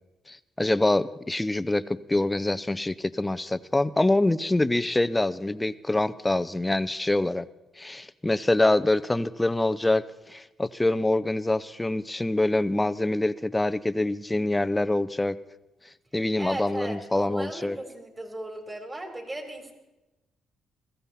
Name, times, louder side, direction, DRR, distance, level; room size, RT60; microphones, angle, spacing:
voice 1, 0.3-7.4 7.8-15.4 16.1-17.8, left 2 dB, 15° left, 15 dB, 0.6 m, -25 dB
voice 2, 16.4-19.7, right 1 dB, 20° right, 4 dB, 3.8 m, -37 dB
22.0 x 15.0 x 4.2 m, 1.0 s
cardioid pair, 90°, 0 cm